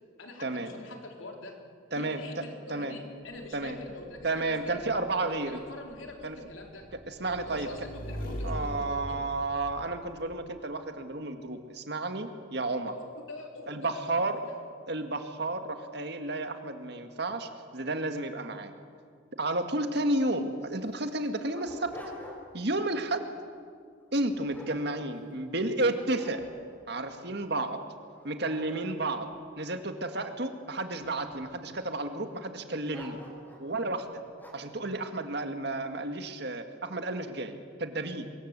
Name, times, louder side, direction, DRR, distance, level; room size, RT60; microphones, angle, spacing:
voice 1, 0.2-1.6 2.0-4.8 5.2-6.8 7.3-9.2 12.9-14.1 14.4-14.5, left 2 dB, 85° left, 2 dB, 3.9 m, -44 dB
voice 2, 1.9-2.4 2.7-2.9 3.5-3.8 4.2-5.6 6.2-6.4 7.1-7.7 8.4-13.0 13.7-14.4 14.9-18.8 19.4-21.9 22.5-23.3 24.1-26.4 26.9-27.8 28.2-33.2 33.6-34.1 34.5-38.3, right 2 dB, 55° right, 7 dB, 2.0 m, -32 dB
Motorcycle / Engine, 3.3-10.4, equal, 45° left, 4.6 m, -42 dB
Dog, 20.0-20.1 20.3-20.4 21.0-22.7 23.1-23.4 24.0-25.5 25.9-26.8 27.4-27.5 28.0-30.3 31.0-31.6 32.9-33.7 34.4-34.8, left 1 dB, 10° left, 5.0 m, -48 dB
24.5 x 22.0 x 8.3 m, 2.1 s
head